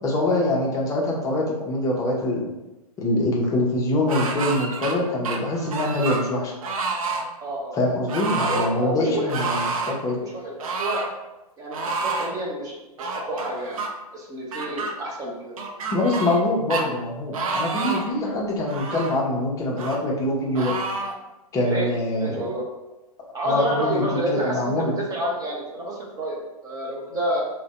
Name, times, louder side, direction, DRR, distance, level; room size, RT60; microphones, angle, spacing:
voice 1, 0.0-2.5 3.0-6.5 7.7-10.2 15.9-20.8 21.5-22.4 23.4-24.9, left 1 dB, 15° left, -2 dB, 0.6 m, -24 dB
sound 1, 4.1-4.9 5.2-6.2 6.6-7.2 8.1-8.7 9.3-10.0 10.6-11.1 11.7-12.3 13.0-13.9 14.5-14.9 15.6-16.4 16.7-16.8 17.3-18.1 18.7-19.2 19.8-20.0 20.5-21.1, right 3 dB, 60° right, 0.5 m, -28 dB
voice 2, 7.4-7.8 8.3-9.6 10.0-11.0 11.6-13.8 14.1-15.6 18.2-18.4 21.6-22.6 23.3-27.4, right 1 dB, 20° right, -3 dB, 0.8 m, -29 dB
2.5 x 2.1 x 4.0 m, 1.0 s
figure-of-eight pair, 115°, 20 cm